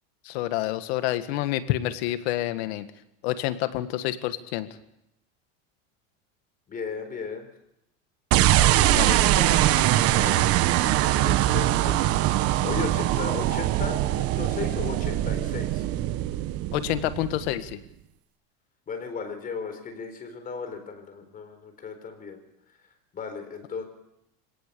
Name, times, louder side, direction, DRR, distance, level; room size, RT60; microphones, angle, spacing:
voice 1, 0.2-2.9 3.2-4.7 8.9-9.6 16.7-17.8, left 14 dB, 75° left, 10 dB, 1.8 m, -28 dB
voice 2, 6.7-7.5 10.1-10.5 11.2-12.2 12.6-15.8 18.9-22.4 23.1-23.8, left 5 dB, 25° left, 7 dB, 4.2 m, -36 dB
sound 1, 8.3-17.7, right 14 dB, 45° right, 1.2 m, -22 dB
26.5 x 18.0 x 6.9 m, 0.83 s
supercardioid pair, 140°, 32 cm